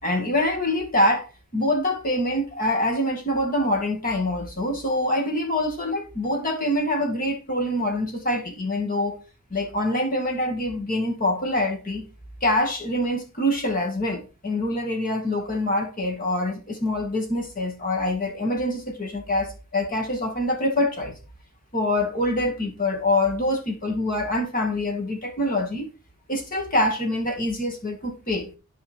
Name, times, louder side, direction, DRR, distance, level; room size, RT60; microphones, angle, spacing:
voice 1, 0.0-1.3 1.5-9.2 9.5-12.0 12.4-21.2 21.7-25.9 26.3-28.5, left 1 dB, 40° left, 2.1 m, -25 dB
12.5 x 4.8 x 3.5 m
head